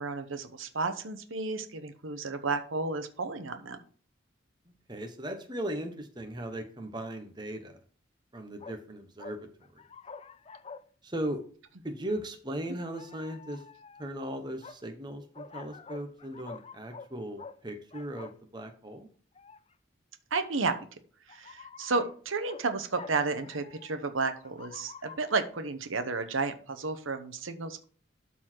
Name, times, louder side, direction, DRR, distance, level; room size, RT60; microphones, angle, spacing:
voice 1, 0.0-3.8 20.3-20.8 21.3-27.8, right 4 dB, 90° right, 9 dB, 1.0 m, -32 dB
voice 2, 4.9-7.8 8.3-9.8 11.0-11.4 11.8-13.6 14.0-19.1, right 1 dB, 20° right, 5 dB, 1.1 m, -38 dB
sound 1, 8.6-8.8 9.2-10.8 11.3-11.4 12.6-14.1 14.6-14.8 15.3-17.1 17.4-17.6 17.9-18.4 19.3-19.7 20.6-20.7 21.3-22.1 22.5-22.6 22.9-24.1 24.4-25.4, left 5 dB, 30° left, 0.4 m, -47 dB
12.5 x 4.2 x 4.5 m, 0.42 s
head